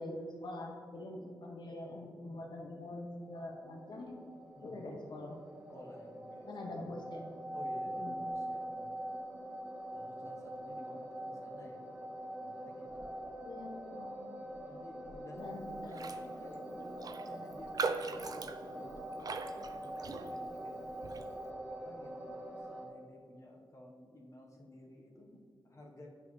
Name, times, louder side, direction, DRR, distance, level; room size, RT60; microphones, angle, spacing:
voice 1, 0.0-4.1 4.6-5.4 6.5-7.3 7.9-8.2 13.4-14.4 15.4-15.7, left 1 dB, 60° left, 1 dB, 1.0 m, -44 dB
sound 1, 3.3-22.9, right 1 dB, 10° right, 1.1 m, -44 dB
voice 2, 4.5-5.0 5.7-6.9 7.5-8.9 9.9-12.0 12.4-13.1 14.6-26.1, left 1 dB, 40° left, 0 dB, 1.1 m, -54 dB
Raindrop, 15.9-16.3 16.5-16.6 17.0-20.6 21.0-21.3, right 4 dB, 50° right, 0.4 m, -40 dB
9.2 x 5.5 x 3.2 m, 2.2 s
cardioid pair, 80°, 8 cm